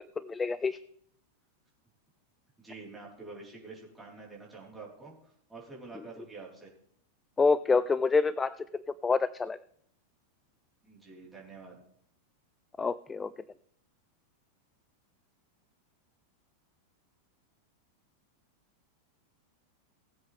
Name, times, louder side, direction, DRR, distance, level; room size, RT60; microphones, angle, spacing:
voice 1, 0.2-0.8 7.4-9.6 12.8-13.3, left 4 dB, 15° left, 17 dB, 0.3 m, -27 dB
voice 2, 2.6-6.7 10.8-11.8, right 3 dB, 5° right, -4 dB, 4.3 m, -47 dB
19.0 x 7.9 x 3.5 m, 0.67 s
figure-of-eight pair, 90°, 0 cm